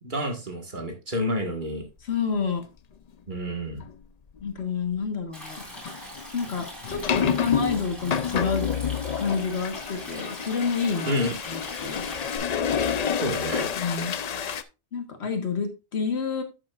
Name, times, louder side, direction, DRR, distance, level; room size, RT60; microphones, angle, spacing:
voice 1, 0.0-1.8 3.3-3.8 11.1-11.3 13.2-13.7, equal, 50° right, 3 dB, 1.8 m, -29 dB
voice 2, 2.0-2.6 4.4-5.6 6.3-8.7 9.2-11.2 11.5-12.1 13.8-14.2 14.9-16.4, left 5 dB, 75° left, 6 dB, 1.6 m, -29 dB
sound 1, 3.8-3.9 4.4-4.6 5.7-14.6, left 7 dB, 50° left, 0.5 m, -29 dB
Stream, 5.3-12.4, equal, ahead, 3.5 m, -42 dB
11.0 x 7.6 x 2.4 m, 0.28 s
omnidirectional pair, 1.1 m